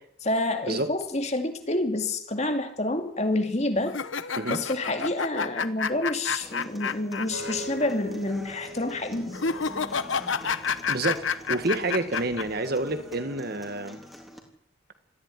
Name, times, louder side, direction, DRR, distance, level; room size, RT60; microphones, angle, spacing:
voice 1, 0.2-4.0 4.5-9.4, left 2 dB, 35° left, 6 dB, 2.4 m, -28 dB
sound 1, 3.9-7.5 7.8-7.9 9.3-12.4, left 5 dB, 70° left, 1.1 m, -29 dB
Human voice / Acoustic guitar, 6.4-14.4, equal, ahead, 3.5 m, -47 dB
sound 2, 7.3-13.3, right 1 dB, 75° right, 2.8 m, -43 dB
voice 2, 10.9-14.0, right 2 dB, 45° right, 9 dB, 1.9 m, -28 dB
20.0 x 15.0 x 9.9 m, 0.73 s
head